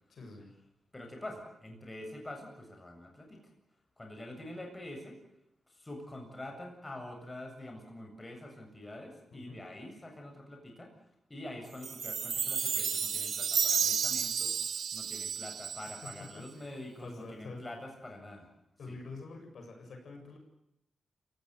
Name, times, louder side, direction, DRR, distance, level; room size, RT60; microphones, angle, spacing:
voice 1, 0.1-0.5 9.3-9.6 16.0-17.6 18.8-20.4, left 3 dB, 65° left, 3 dB, 7.5 m, -47 dB
voice 2, 0.9-3.4 4.0-5.2 5.8-10.9 11.3-14.6 14.9-18.5 18.9-19.0, left 1 dB, 20° left, 3 dB, 7.5 m, -45 dB
Chime, 11.8-16.3, right 7 dB, 65° right, 1.0 m, -32 dB
28.5 x 17.5 x 8.3 m, 0.84 s
cardioid pair, 90°, 0 cm